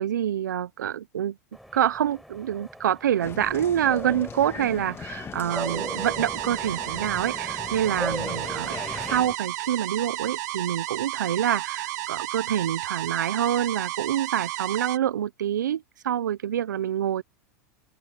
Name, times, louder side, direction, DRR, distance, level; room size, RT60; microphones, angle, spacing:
voice 1, 0.0-1.4 1.7-17.2, right 10 dB, 80° right, 1.1 m, -26 dB
sound 1, 1.5-9.2, equal, ahead, 4.7 m, -39 dB
Applause, 3.2-9.4, left 7 dB, 25° left, 2.0 m, -40 dB
sound 2, 5.5-15.0, right 18 dB, 65° right, 1.4 m, -32 dB
open air
hypercardioid pair, 100°, 10 cm